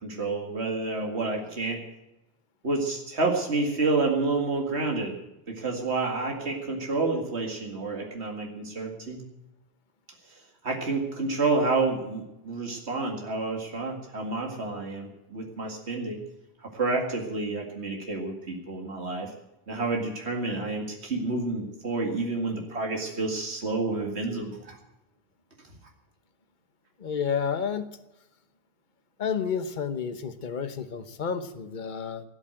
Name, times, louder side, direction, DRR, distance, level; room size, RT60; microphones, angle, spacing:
voice 1, 0.0-1.8 2.6-5.2 5.5-9.2 10.3-16.2 16.6-19.3 19.7-24.8, right 3 dB, 80° right, 1 dB, 2.4 m, -29 dB
voice 2, 27.0-27.9 29.2-32.2, left 7 dB, 45° left, 11 dB, 1.2 m, -30 dB
18.0 x 8.2 x 9.0 m, 0.94 s
omnidirectional pair, 1.1 m